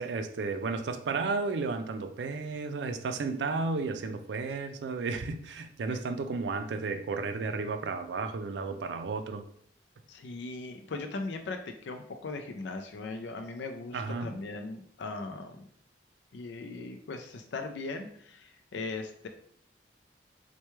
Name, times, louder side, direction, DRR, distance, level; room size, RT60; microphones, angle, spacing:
voice 1, 0.0-9.4 13.9-14.3, right 4 dB, 75° right, 8 dB, 0.4 m, -33 dB
voice 2, 10.1-15.6 16.3-19.3, left 3 dB, 85° left, 6 dB, 0.4 m, -39 dB
4.4 x 2.2 x 3.0 m, 0.64 s
head